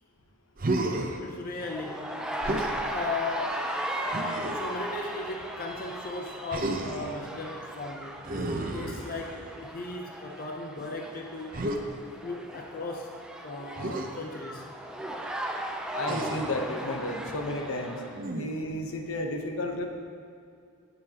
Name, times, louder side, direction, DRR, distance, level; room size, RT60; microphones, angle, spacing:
Human voice, 0.6-1.2 2.4-2.8 4.1-4.8 6.5-7.1 8.2-9.5 11.5-11.8 13.8-14.1 16.0-16.6 18.1-18.7, right 2 dB, 40° right, 0.7 m, -32 dB
voice 1, 1.2-2.1 2.9-3.6 4.5-8.3 8.7-11.7 12.2-13.1 13.4-14.7, left 3 dB, 40° left, 1 dB, 0.6 m, -37 dB
sound 1, 1.6-18.2, right 1 dB, 5° right, 0.5 m, -37 dB
voice 2, 15.9-18.0 18.3-19.8, left 1 dB, 75° left, 3 dB, 0.9 m, -32 dB
16.5 x 6.7 x 2.9 m, 2.4 s
head